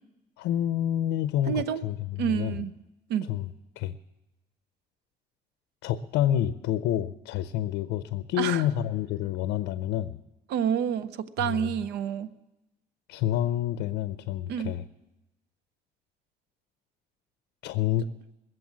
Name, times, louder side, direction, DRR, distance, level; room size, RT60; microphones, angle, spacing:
voice 1, 0.4-2.6 3.3-3.5 3.8-3.9 5.8-10.2 11.4-11.7 13.1-14.8 17.6-18.1, left 11 dB, 85° left, 12 dB, 0.5 m, -28 dB
voice 2, 1.5-1.8 2.2-2.7 3.1-3.3 8.4-8.6 10.5-12.3 14.5-14.7, right 8 dB, 80° right, 15 dB, 0.8 m, -28 dB
21.0 x 7.7 x 7.4 m, 0.99 s
cardioid pair, 110°, 17 cm